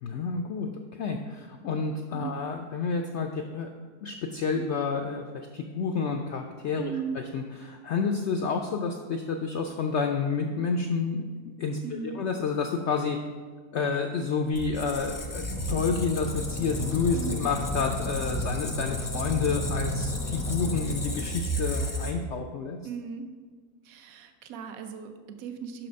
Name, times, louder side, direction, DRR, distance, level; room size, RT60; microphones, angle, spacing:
voice 1, 0.0-3.7 4.0-11.2 11.6-13.2 13.7-22.8, left 5 dB, 75° left, 4 dB, 0.6 m, -30 dB
voice 2, 6.8-7.2 11.8-12.2 17.1-17.5 22.8-23.3 23.8-25.9, right 6 dB, 65° right, 7 dB, 1.1 m, -37 dB
Squeak, 14.6-22.4, equal, 25° left, 0.4 m, -31 dB
6.0 x 5.9 x 5.1 m, 1.5 s
omnidirectional pair, 1.7 m